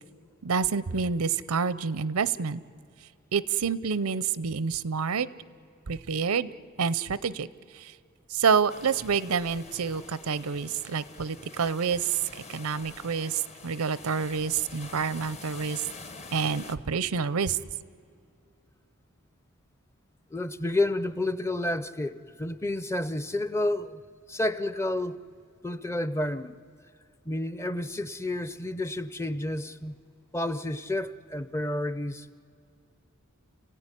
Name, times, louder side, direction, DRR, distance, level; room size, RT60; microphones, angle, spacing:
voice 1, 0.4-2.6 3.3-5.3 5.9-6.5 6.8-7.5 7.7-7.9 8.3-12.2 12.5-15.8 16.3-17.6, right 6 dB, 90° right, 0.7 m, -28 dB
sound 1, 8.7-16.8, left 3 dB, 30° left, 1.0 m, -46 dB
voice 2, 20.3-24.0 24.3-25.2 25.6-26.6 27.3-29.9 30.3-32.4, left 1 dB, 10° left, 0.6 m, -30 dB
30.0 x 16.0 x 9.9 m
head